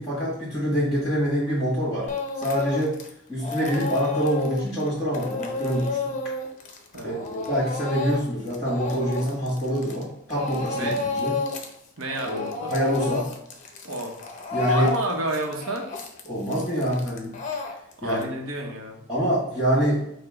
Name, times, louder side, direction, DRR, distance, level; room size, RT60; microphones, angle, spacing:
voice 1, 0.0-2.1 2.4-3.0 3.3-6.1 7.0-11.4 12.3-12.4 12.7-13.3 14.5-14.9 16.2-17.4 18.0-18.3 19.1-20.0, equal, ahead, -10 dB, 1.6 m, -25 dB
Speech / Crying sobbing, 2.1-3.1 3.4-10.0 10.3-11.7 12.0-18.2, left 3 dB, 35° left, 0.5 m, -31 dB
voice 2, 6.9-7.3 10.7-11.0 12.0-12.7 13.8-14.1 14.6-15.9 18.0-19.0, right 2 dB, 80° right, 2 dB, 0.9 m, -30 dB
4.9 x 2.1 x 4.7 m, 0.75 s
head